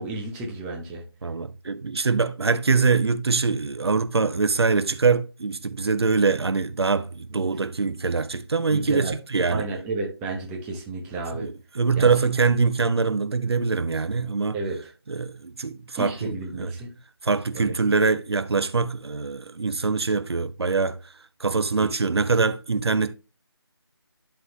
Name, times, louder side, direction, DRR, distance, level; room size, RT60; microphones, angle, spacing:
voice 1, 0.0-1.0 8.7-9.1 9.5-11.5 12.0-12.1 14.5-14.9 16.0-16.9 17.5-17.8 21.8-21.9, right 3 dB, 5° right, 0.8 m, -32 dB
voice 2, 1.2-9.7 11.4-14.6 15.1-16.7 17.2-21.0 21.4-23.2, right 4 dB, 75° right, 0.6 m, -23 dB
11.5 x 3.8 x 3.0 m
figure-of-eight pair, 165°, 14 cm